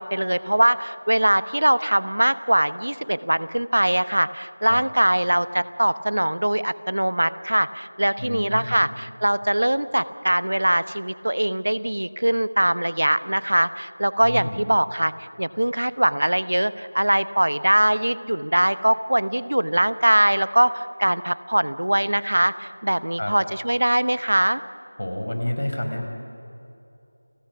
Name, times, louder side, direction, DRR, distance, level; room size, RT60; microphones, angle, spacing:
voice 1, 0.0-15.1 15.4-24.6, right 1 dB, 85° right, 15 dB, 1.0 m, -22 dB
voice 2, 8.2-8.8 14.2-14.6 23.2-23.3 25.0-26.0, left 1 dB, 80° left, 3 dB, 5.0 m, -29 dB
30.0 x 19.5 x 6.1 m, 2.8 s
figure-of-eight pair, 180°, 0 cm